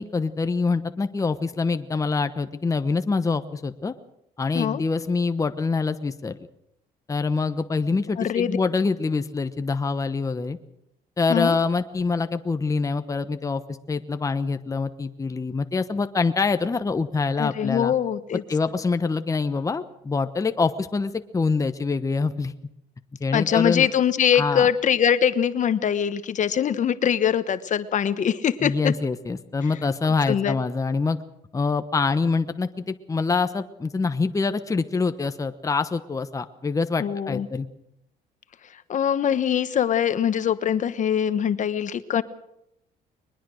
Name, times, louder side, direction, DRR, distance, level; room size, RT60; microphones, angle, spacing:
voice 1, 0.0-3.9 4.4-6.4 7.1-10.6 11.2-17.9 18.5-22.5 23.2-23.9 24.3-24.7 28.6-31.2 31.5-37.7, left 4 dB, 20° left, 9 dB, 1.1 m, -25 dB
voice 2, 8.2-8.6 11.3-11.5 17.4-18.4 23.3-28.9 30.3-30.5 37.0-37.5 38.9-42.2, left 9 dB, 45° left, 12 dB, 1.2 m, -23 dB
22.5 x 20.5 x 6.4 m, 0.79 s
cardioid pair, 110°, 17 cm